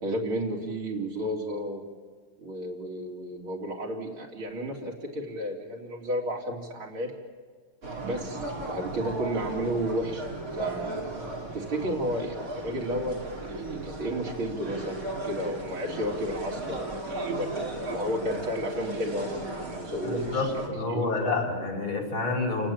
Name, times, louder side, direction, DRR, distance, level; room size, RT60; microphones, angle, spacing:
voice 1, 0.0-1.8 2.4-7.1 8.0-10.2 10.5-11.0 11.5-13.2 13.5-20.5 20.9-21.3, equal, 85° right, -2 dB, 4.3 m, -32 dB
sound 1, 7.8-20.7, right 2 dB, 40° right, 3.6 m, -36 dB
voice 2, 20.0-22.7, left 3 dB, 75° left, 1 dB, 5.2 m, -29 dB
29.5 x 18.0 x 8.8 m, 1.5 s
omnidirectional pair, 2.3 m